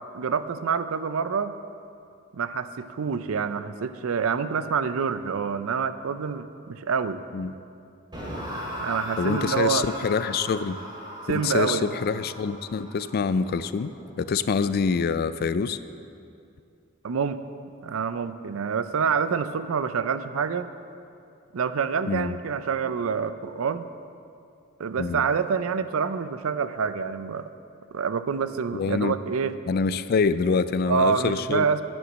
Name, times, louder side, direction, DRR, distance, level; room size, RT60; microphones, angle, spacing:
voice 1, 0.0-1.6 2.3-7.2 8.7-9.9 11.3-11.9 17.0-17.4 17.8-20.7 21.5-23.9 24.8-27.5 27.9-29.5 30.9-31.8, right 6 dB, 85° right, 12 dB, 0.5 m, -27 dB
sound 1, 8.1-15.2, equal, 25° right, 2.3 m, -38 dB
voice 2, 9.2-10.8 11.3-13.9 14.2-15.8 22.1-22.3 25.0-25.2 28.7-29.2 29.7-31.8, left 5 dB, 50° left, 14 dB, 0.3 m, -25 dB
9.6 x 8.0 x 6.2 m, 2.5 s
head